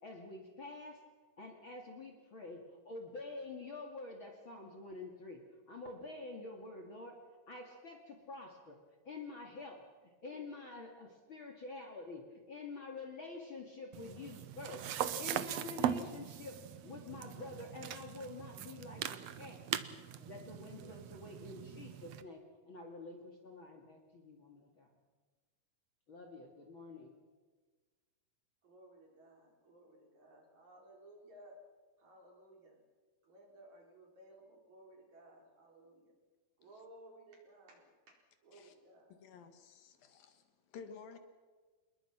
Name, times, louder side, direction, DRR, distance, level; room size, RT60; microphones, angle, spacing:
voice 1, 0.0-1.0 1.4-5.4 5.7-7.2 7.5-8.8 9.0-9.8 10.2-19.6 20.2-22.4 22.7-24.9 26.1-27.1, left 3 dB, 40° left, 2 dB, 2.5 m, -48 dB
sound 1, 13.9-22.2, right 10 dB, 80° right, 1.4 m, -40 dB
voice 2, 28.6-31.6 32.0-32.8 33.2-36.1 36.6-38.2 38.4-39.2, right 1 dB, 50° right, 0 dB, 5.6 m, -59 dB
voice 3, 39.1-40.4 40.7-41.2, left 5 dB, 75° left, 8 dB, 3.3 m, -53 dB
27.0 x 21.5 x 6.0 m, 1.4 s
omnidirectional pair, 4.3 m